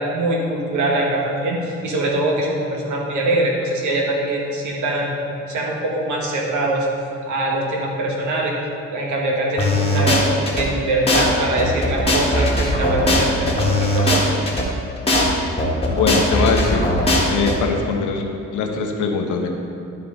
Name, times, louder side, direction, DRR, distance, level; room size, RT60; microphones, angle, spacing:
voice 1, 0.0-6.9 7.3-8.5 8.9-14.3, right 1 dB, 75° right, -2 dB, 1.6 m, -23 dB
sound 1, 9.6-10.6 11.1-11.2 11.6-14.6 15.1-15.2 15.6-17.5, left 1 dB, 20° left, 1.6 m, -19 dB
voice 2, 15.9-16.9 17.3-18.2 18.5-19.5, left 4 dB, 85° left, 3 dB, 1.0 m, -21 dB
12.0 x 4.7 x 3.9 m, 2.6 s
cardioid pair, 90°, 30 cm